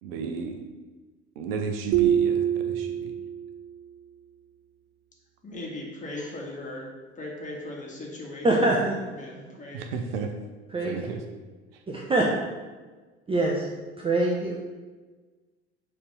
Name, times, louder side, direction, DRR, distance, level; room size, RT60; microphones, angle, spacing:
voice 1, 0.0-0.6 1.4-3.2 9.7-10.3 10.8-11.2 11.7-11.8, right 5 dB, 60° right, 5 dB, 0.7 m, -33 dB
sound 1, 1.9-3.6, right 10 dB, 35° right, 0.4 m, -24 dB
voice 2, 5.4-6.9 7.2-8.7 9.1-9.8, left 2 dB, 20° left, -2 dB, 1.8 m, -38 dB
voice 3, 8.4-9.0 10.7-10.9 11.9-12.2 13.3-13.7 14.0-14.6, right 2 dB, 15° right, -2 dB, 0.8 m, -23 dB
6.9 x 3.4 x 5.2 m, 1.3 s
figure-of-eight pair, 65°, 33 cm